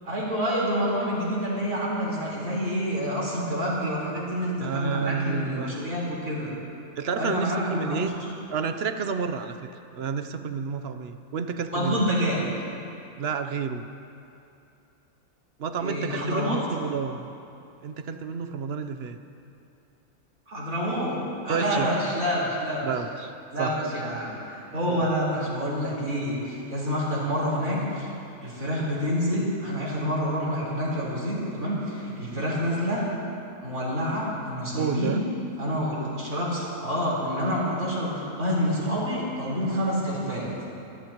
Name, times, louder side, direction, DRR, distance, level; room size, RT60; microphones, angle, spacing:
voice 1, 0.0-6.5 7.2-8.3 11.7-12.5 15.8-16.6 20.5-21.2 21.4-22.9 23.5-28.1 28.4-33.0 33.6-35.2 35.6-40.5, equal, 70° right, -7 dB, 4.7 m, -28 dB
voice 2, 4.6-5.7 7.0-8.2 8.5-9.6 9.9-12.1 13.2-13.8 15.6-17.3 17.8-19.2 21.5-21.9 22.8-23.3 23.6-23.8 24.9-25.1 34.7-35.2, right 6 dB, 55° right, 8 dB, 0.8 m, -30 dB
27.0 x 14.0 x 3.0 m, 2.7 s
omnidirectional pair, 1.5 m